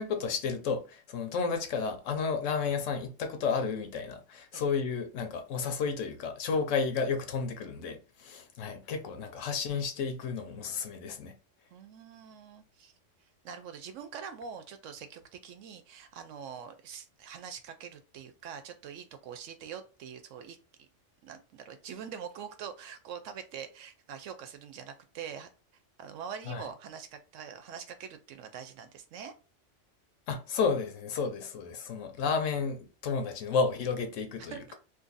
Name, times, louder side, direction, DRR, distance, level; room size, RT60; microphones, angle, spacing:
voice 1, 0.0-11.4 26.5-26.6 30.3-34.6, left 5 dB, 85° left, 1.1 m, -32 dB
voice 2, 11.7-12.9 13.4-20.9 21.2-25.5 26.0-29.3 34.4-34.8, right 7 dB, 85° right, 1.0 m, -44 dB
2.7 x 2.6 x 3.8 m
omnidirectional pair, 1.3 m